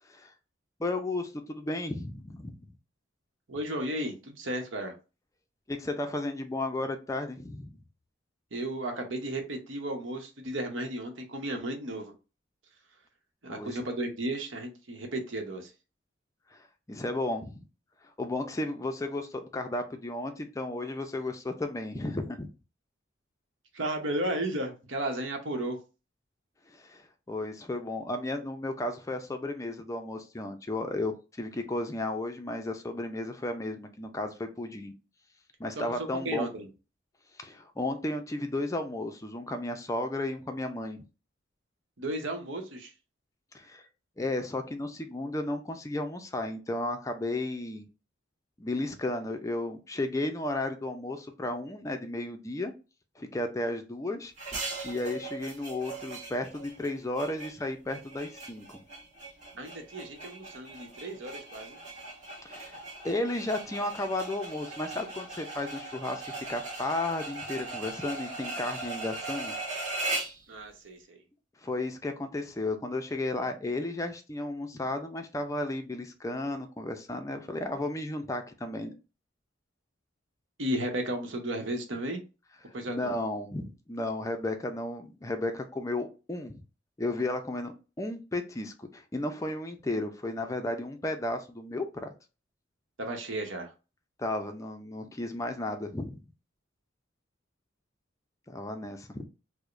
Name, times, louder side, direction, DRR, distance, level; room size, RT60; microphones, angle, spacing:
voice 1, 0.8-2.6 5.7-7.8 13.5-13.8 16.5-17.6 18.2-22.5 26.7-34.9 35.6-36.5 37.4-41.0 43.5-43.8 44.2-47.9 48.6-52.7 53.2-54.3 54.8-58.8 62.4-62.8 63.0-69.5 71.6-78.9 82.9-86.6 87.0-92.1 94.2-96.2 98.5-99.3, left 2 dB, 15° left, 6 dB, 0.4 m, -34 dB
voice 2, 3.5-4.9 8.5-12.1 13.4-15.7 23.7-25.8 35.8-36.7 42.0-42.9 59.5-61.8 70.5-71.2 80.6-82.2 82.7-83.1 93.0-93.7, right 1 dB, 80° right, 4 dB, 0.9 m, -34 dB
sound 1, 54.4-70.4, right 2 dB, 40° right, 1.3 m, -39 dB
4.7 x 2.1 x 2.5 m, 0.31 s
head